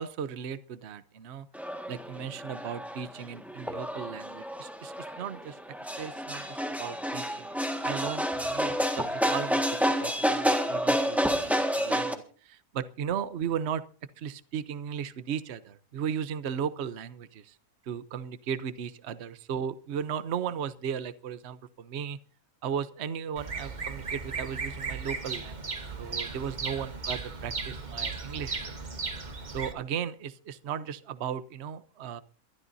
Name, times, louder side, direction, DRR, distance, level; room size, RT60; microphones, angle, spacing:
voice 1, 0.0-1.5 1.9-5.6 6.0-7.5 7.8-13.8 14.2-17.6 17.9-22.2 22.6-25.7 26.0-28.8 29.5-32.2, right 8 dB, 55° right, 13 dB, 1.0 m, -36 dB
sound 1, 1.5-12.1, equal, ahead, 1.6 m, -29 dB
Bird vocalization bird call bird song, 23.4-29.7, right 4 dB, 35° right, 1.3 m, -36 dB
23.5 x 13.0 x 2.7 m, 0.40 s
omnidirectional pair, 1.5 m